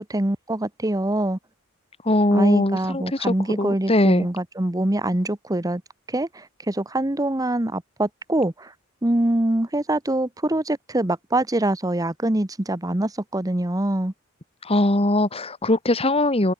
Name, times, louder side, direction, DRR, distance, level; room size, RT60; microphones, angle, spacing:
voice 1, 0.0-1.4 2.3-5.8 6.1-8.7 9.0-14.1, right 1 dB, 15° right, 1.1 m, -24 dB
voice 2, 2.0-4.3 14.6-16.5, left 1 dB, 30° left, 2.3 m, -21 dB
head